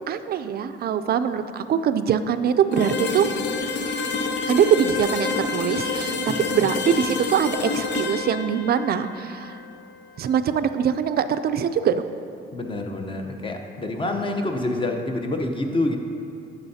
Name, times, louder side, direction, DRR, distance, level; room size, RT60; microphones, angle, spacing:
voice 1, 0.1-3.3 4.5-6.2 6.5-9.6 10.2-12.0, right 8 dB, 50° right, 11 dB, 0.4 m, -23 dB
sound 1, 2.7-10.5, left 4 dB, 70° left, 0.7 m, -28 dB
voice 2, 12.5-16.0, left 2 dB, 25° left, 4 dB, 0.8 m, -27 dB
8.8 x 7.9 x 2.8 m, 2.6 s
cardioid pair, 90°, 20 cm